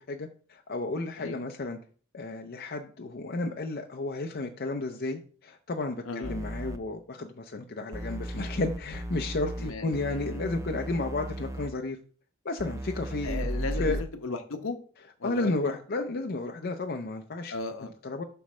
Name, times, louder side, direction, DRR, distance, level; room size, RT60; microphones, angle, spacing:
voice 1, 0.1-1.8 2.1-12.0 12.4-13.5 13.8-14.0 15.2-17.5 18.0-18.2, left 2 dB, 50° left, 4 dB, 0.6 m, -32 dB
voice 2, 6.0-6.4 9.6-10.2 13.2-14.8 15.2-15.7 17.5-17.9, left 3 dB, 70° left, 6 dB, 1.0 m, -36 dB
sound 1, 6.2-6.8 7.9-11.7 12.6-14.0, right 1 dB, 15° right, 0.4 m, -35 dB
7.8 x 3.2 x 6.1 m, 0.43 s
head